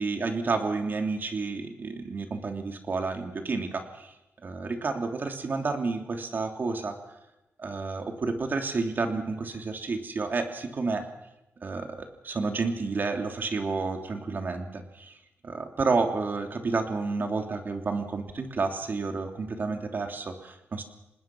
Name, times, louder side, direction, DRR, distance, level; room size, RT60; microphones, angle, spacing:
voice 1, 0.0-4.1 4.4-7.0 7.6-11.1 11.6-15.1 15.4-20.8, right 4 dB, 50° right, 4 dB, 3.1 m, -30 dB
26.0 x 20.0 x 6.2 m, 0.93 s
wide cardioid pair, 105°, 4 cm